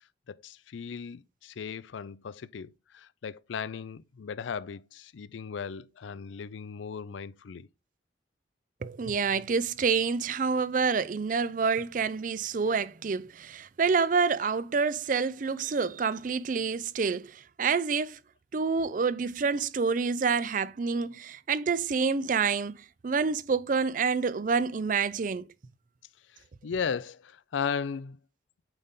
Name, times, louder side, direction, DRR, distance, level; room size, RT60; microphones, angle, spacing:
voice 1, 0.3-7.7 26.3-28.2, left 6 dB, 85° left, 0.4 m, -36 dB
voice 2, 8.8-18.2 18.5-25.4, right 5 dB, 45° right, 0.4 m, -28 dB
9.0 x 4.0 x 3.6 m
head